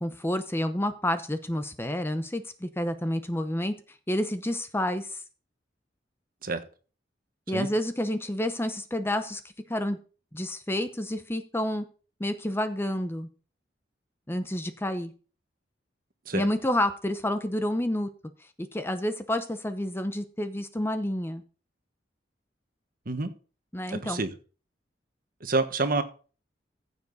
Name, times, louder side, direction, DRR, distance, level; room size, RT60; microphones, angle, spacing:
voice 1, 0.0-3.7 4.1-5.2 7.5-9.4 9.7-10.0 10.3-11.8 12.2-13.3 14.3-15.1 16.3-18.1 18.6-21.4 23.7-24.2, left 1 dB, 15° left, 9 dB, 0.8 m, -29 dB
voice 2, 23.9-24.3 25.4-26.0, right 3 dB, 50° right, 8 dB, 1.3 m, -27 dB
14.5 x 7.0 x 4.1 m, 0.38 s
head